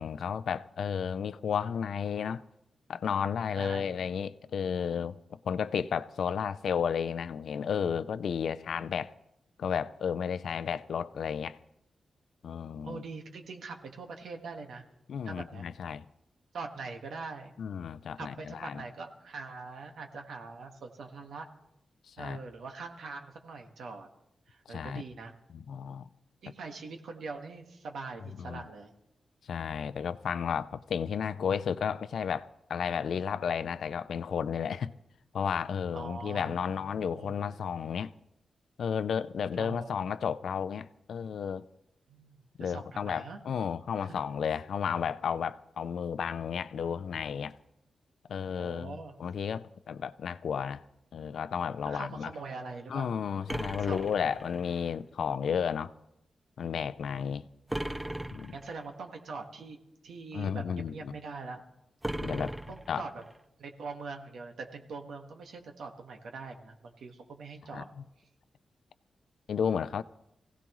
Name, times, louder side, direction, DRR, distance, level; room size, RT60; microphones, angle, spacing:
voice 1, 0.0-2.4 2.9-9.1 9.6-11.6 12.4-13.0 15.1-16.0 17.6-18.8 22.1-22.4 24.7-25.0 25.5-26.1 28.4-28.7 29.5-34.9 35.3-38.1 38.8-41.6 42.6-47.5 48.3-50.8 51.1-52.3 52.9-55.9 56.6-57.5 58.3-58.6 60.3-61.2 62.2-62.5 62.9-63.1 67.7-68.0 69.5-70.0, left 7 dB, 80° left, 0.5 m, -33 dB
voice 2, 3.6-4.0 12.8-14.8 15.2-15.7 16.5-17.5 18.2-21.5 22.2-24.1 24.5-25.3 26.4-28.9 35.9-37.6 39.6-40.1 42.1-43.4 44.0-44.1 48.6-49.1 51.8-53.1 53.9-54.3 58.5-59.8 60.0-61.6 62.7-63.2 63.6-67.9, right 4 dB, 85° right, 1.6 m, -43 dB
sound 1, 53.5-54.9 57.7-58.9 62.0-63.4, right 1 dB, 10° right, 0.5 m, -37 dB
24.0 x 16.5 x 3.1 m
wide cardioid pair, 125°, 0 cm